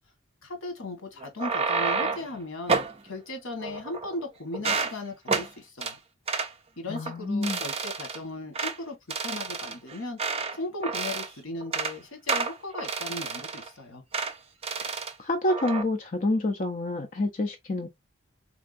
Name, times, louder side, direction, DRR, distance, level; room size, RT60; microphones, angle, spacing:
voice 1, 0.4-6.0 6.8-9.0 9.2-10.2 10.5-14.0, left 2 dB, 90° left, 1.3 m, -37 dB
sound 1, 1.2-2.3 2.7-3.0 3.6-4.2 4.5-4.9 5.3-5.5 5.8-5.9 6.3-6.5 6.9-7.1 7.4-8.2 8.5-8.8 9.1-10.6 10.8-11.3 11.6-11.9 12.3-13.7 14.1-14.3 14.6-15.1 15.5-15.8, right 4 dB, 30° right, 0.5 m, -29 dB
voice 2, 6.9-7.6 15.2-17.9, left 2 dB, 40° left, 0.5 m, -28 dB
3.5 x 3.4 x 2.5 m
head